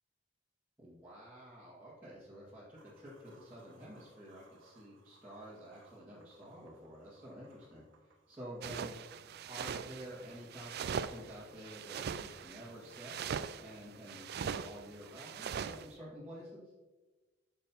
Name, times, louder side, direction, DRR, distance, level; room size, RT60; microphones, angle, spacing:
voice 1, 0.8-8.9 9.5-13.2 13.6-16.7, equal, 10° right, -11 dB, 2.0 m, -50 dB
sound 1, 2.7-14.3, right 4 dB, 75° right, 1.3 m, -68 dB
sound 2, 8.6-15.9, right 7 dB, 55° right, 0.3 m, -41 dB
9.4 x 6.5 x 3.0 m, 1.2 s
head